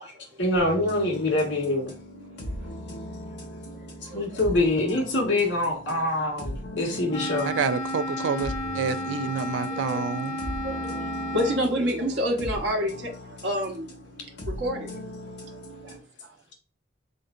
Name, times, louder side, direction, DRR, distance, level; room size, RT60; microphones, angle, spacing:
voice 1, 0.4-1.9 4.1-7.5, left 2 dB, 85° left, 1.8 m, -25 dB
sound 1, 0.5-16.0, left 1 dB, 65° left, 1.5 m, -39 dB
voice 2, 4.1-4.4 9.6-10.0 10.6-13.1 13.4-13.9 14.5-15.0 15.8-15.9, equal, 70° right, 1.3 m, -28 dB
Wind instrument woodwind instrument, 7.1-11.7, left 1 dB, 45° left, 1.0 m, -32 dB
voice 3, 7.4-10.4, right 6 dB, 90° right, 0.4 m, -28 dB
4.3 x 3.8 x 2.6 m
head